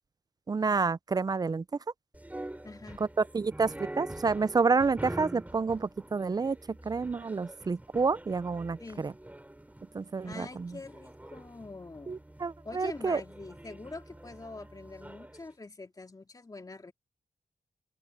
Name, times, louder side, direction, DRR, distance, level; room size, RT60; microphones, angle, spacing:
voice 1, 0.5-1.6 3.3-6.6 6.9-8.8 9.0-9.1 9.9-10.7 12.1-13.2, right 4 dB, 30° right, 0.4 m, -29 dB
sound 1, 2.1-15.4, right 1 dB, 10° right, 3.4 m, -45 dB
voice 2, 2.6-3.0 8.8-9.1 10.2-12.2 12.6-16.9, left 3 dB, 30° left, 2.5 m, -45 dB
open air
cardioid pair, 85°, 13 cm